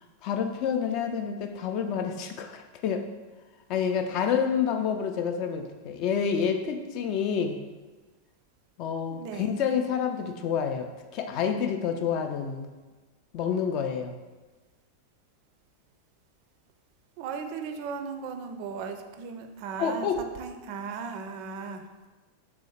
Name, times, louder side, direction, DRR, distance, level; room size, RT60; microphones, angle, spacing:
voice 1, 0.2-3.1 3.7-7.6 8.8-12.7 13.3-14.1 19.8-20.2, left 7 dB, 40° left, 6 dB, 0.3 m, -28 dB
voice 2, 9.1-9.6 17.2-20.1 20.4-21.9, right 5 dB, 45° right, 6 dB, 0.4 m, -37 dB
3.1 x 2.7 x 4.1 m, 1.2 s
figure-of-eight pair, 90°, 0 cm